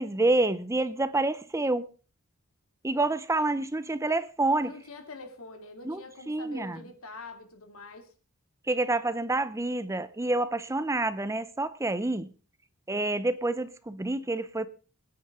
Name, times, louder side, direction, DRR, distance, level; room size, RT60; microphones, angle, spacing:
voice 1, 0.0-1.9 2.8-4.7 5.8-6.8 8.7-12.3 12.9-14.7, right 2 dB, 15° right, 0.6 m, -28 dB
voice 2, 4.6-8.1, left 3 dB, 75° left, 2.6 m, -45 dB
25.0 x 9.6 x 3.7 m
head